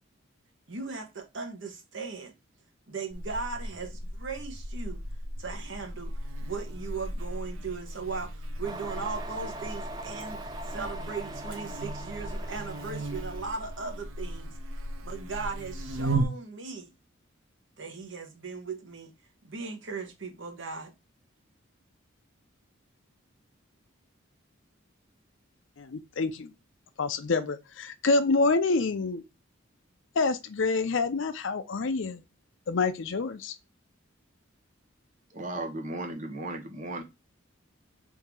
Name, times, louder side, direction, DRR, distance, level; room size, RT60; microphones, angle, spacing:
voice 1, 0.7-2.3 2.9-5.0 5.4-6.1 6.4-14.5 15.0-16.9 17.8-19.1 19.4-20.9, right 4 dB, 60° right, 1.0 m, -38 dB
Buzz, 3.1-16.3, right 1 dB, 85° right, 0.7 m, -36 dB
sound 1, 8.6-13.9, right 1 dB, 20° right, 0.3 m, -42 dB
voice 2, 25.8-26.5 27.0-29.2 30.2-32.2 32.7-33.6, left 3 dB, 65° left, 0.5 m, -27 dB
voice 3, 35.3-37.0, right 2 dB, 35° right, 0.9 m, -35 dB
3.6 x 2.7 x 4.5 m
head